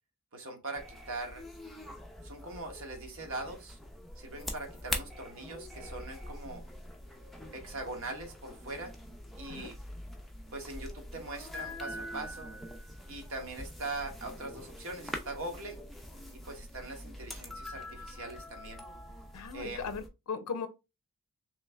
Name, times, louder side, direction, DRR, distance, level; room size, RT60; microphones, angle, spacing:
voice 1, 0.3-1.4 2.2-3.8 4.2-6.6 7.5-8.9 9.4-9.8 10.5-12.5 13.1-15.8 16.4-18.8 19.5-19.9, right 2 dB, 65° right, 1.1 m, -41 dB
sound 1, 0.7-20.1, left 1 dB, ahead, 0.4 m, -44 dB
voice 2, 19.3-20.7, left 5 dB, 90° left, 0.5 m, -38 dB
3.2 x 3.1 x 3.3 m
head